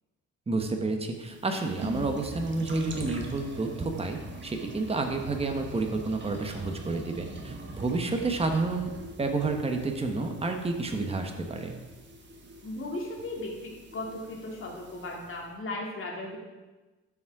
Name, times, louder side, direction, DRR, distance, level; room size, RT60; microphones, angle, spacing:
voice 1, 0.5-8.9 9.2-11.7, right 3 dB, 20° right, 4 dB, 1.2 m, -30 dB
sound 1, 1.2-15.5, right 2 dB, 40° right, 1.5 m, -43 dB
voice 2, 12.6-16.4, left 2 dB, 45° left, -1 dB, 2.4 m, -36 dB
12.5 x 6.3 x 4.8 m, 1.2 s
cardioid pair, 145°, 30 cm